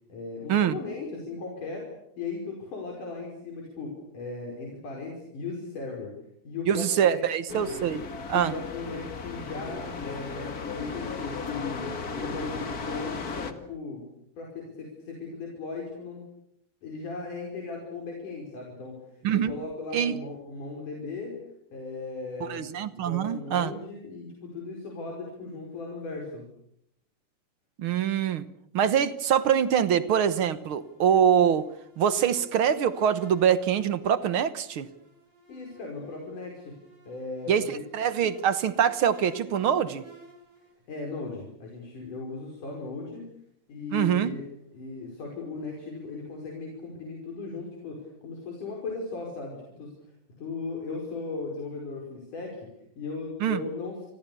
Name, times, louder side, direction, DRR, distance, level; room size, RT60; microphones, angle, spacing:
voice 1, 0.1-1.9 2.2-6.1 6.4-7.2 7.5-7.7 8.3-14.1 14.4-16.3 16.8-19.0 19.3-21.4 21.7-22.7 23.0-26.4 35.5-36.7 37.1-37.8 40.9-43.3 43.7-44.4 44.7-49.9 50.4-54.1, left 3 dB, 90° left, 0 dB, 6.7 m, -37 dB
voice 2, 6.7-8.0 8.3-8.5 19.2-19.5 19.9-20.1 22.4-23.7 27.8-28.4 28.7-31.6 32.0-34.9 37.5-40.0 43.9-44.3 53.4-53.6, right 8 dB, 55° right, 14 dB, 1.6 m, -24 dB
sound 1, 7.5-13.5, left 4 dB, 35° left, 1.9 m, -35 dB
sound 2, 29.9-40.7, right 2 dB, 40° right, 8.9 m, -54 dB
29.5 x 25.0 x 7.0 m, 0.74 s
omnidirectional pair, 3.5 m